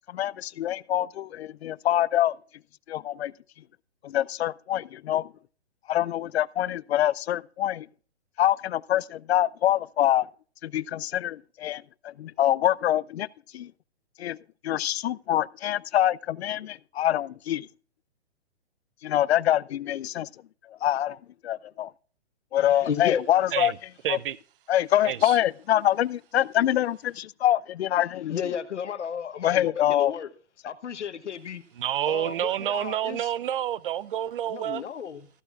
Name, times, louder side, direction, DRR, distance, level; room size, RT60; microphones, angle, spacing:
voice 1, 0.1-2.4 2.9-3.3 4.0-5.3 5.9-7.9 8.4-10.3 10.6-13.3 13.5-13.7 14.2-14.4 14.6-17.7 19.0-20.3 20.8-21.2 21.4-21.9 22.5-23.7 24.1-24.2 24.7-28.3 29.4-30.1, left 12 dB, 65° left, 0.5 m, -25 dB
voice 2, 22.6-23.2 28.3-30.3 30.6-31.6 32.1-33.3 34.5-35.3, left 8 dB, 90° left, 1.1 m, -33 dB
voice 3, 24.0-24.4 25.0-25.4 31.8-34.8, right 11 dB, 50° right, 0.5 m, -28 dB
14.0 x 12.5 x 2.4 m
hypercardioid pair, 160°, 34 cm